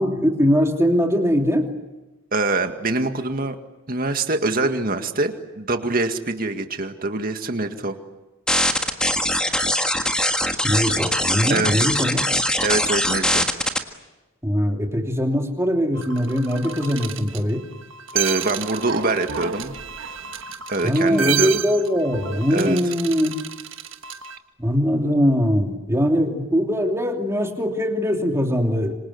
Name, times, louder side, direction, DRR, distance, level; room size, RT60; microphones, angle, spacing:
voice 1, 0.0-1.7 10.6-12.3 14.4-17.6 20.8-23.3 24.6-28.9, equal, 15° right, 2 dB, 3.0 m, -21 dB
voice 2, 2.3-3.6 3.9-8.0 11.5-11.9 12.6-13.5 18.1-19.7 20.7-21.5 22.5-22.8, right 2 dB, 45° right, 6 dB, 2.0 m, -24 dB
sound 1, 8.5-13.8, left 1 dB, 5° left, 1.6 m, -21 dB
sound 2, 16.0-24.4, right 8 dB, 65° right, 1.5 m, -30 dB
27.0 x 26.0 x 8.1 m, 1.1 s
head